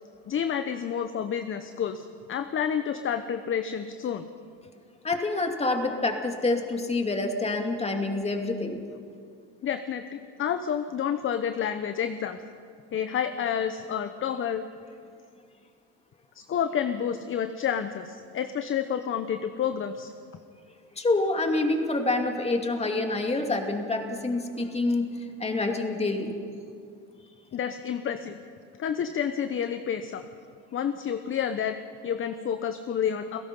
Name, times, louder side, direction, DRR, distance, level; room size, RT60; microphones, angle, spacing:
voice 1, 0.3-4.3 9.6-12.4 12.9-14.6 16.3-20.1 27.2-28.4 28.8-30.2 30.7-31.7 32.0-33.4, left 8 dB, 35° left, 9 dB, 1.0 m, -29 dB
voice 2, 5.0-8.8 21.0-25.1 25.4-26.3, left 2 dB, 20° left, 4 dB, 2.5 m, -27 dB
30.0 x 16.5 x 5.5 m, 2.3 s
supercardioid pair, 100°, 35 cm